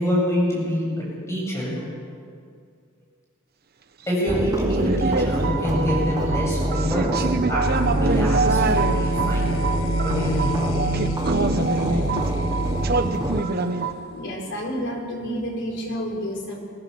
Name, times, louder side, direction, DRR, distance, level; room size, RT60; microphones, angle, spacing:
voice 1, 0.0-1.7 4.1-9.5 10.0-10.8, equal, 15° left, -5 dB, 7.7 m, -26 dB
sound 1, 4.3-13.4, right 1 dB, 20° right, 0.7 m, -26 dB
sound 2, 4.6-13.9, right 3 dB, 45° right, 1.1 m, -25 dB
sound 3, 7.6-14.3, left 1 dB, 70° left, 0.6 m, -32 dB
voice 2, 14.1-16.6, equal, 55° left, 0 dB, 4.4 m, -30 dB
22.5 x 17.5 x 7.0 m, 2.3 s
head